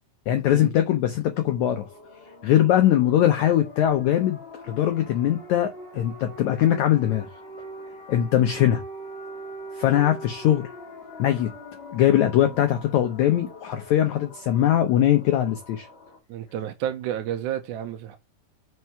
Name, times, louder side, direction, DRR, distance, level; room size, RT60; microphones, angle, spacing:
voice 1, 0.3-1.9 2.4-7.3 8.1-8.8 9.8-10.7 11.2-11.5 11.9-15.9, left 11 dB, 85° left, 1.6 m, -21 dB
sound 1, 1.5-16.2, equal, 65° left, 0.6 m, -42 dB
voice 2, 16.3-18.2, right 11 dB, 80° right, 1.8 m, -31 dB
5.5 x 4.6 x 5.6 m
omnidirectional pair, 4.4 m